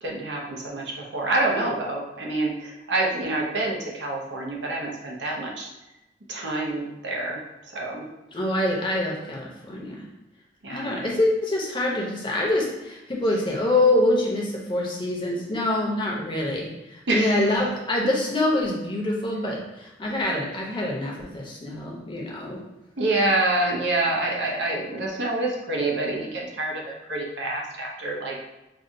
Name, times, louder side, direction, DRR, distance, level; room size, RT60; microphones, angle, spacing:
voice 1, 0.0-5.7 6.3-7.4 7.7-8.0 10.6-11.0 17.1-17.5 23.0-28.4, right 2 dB, 90° right, -2 dB, 0.8 m, -27 dB
voice 2, 8.3-10.0 10.7-22.6, left 1 dB, 25° left, -2 dB, 0.7 m, -25 dB
5.3 x 2.4 x 2.6 m, 0.95 s
head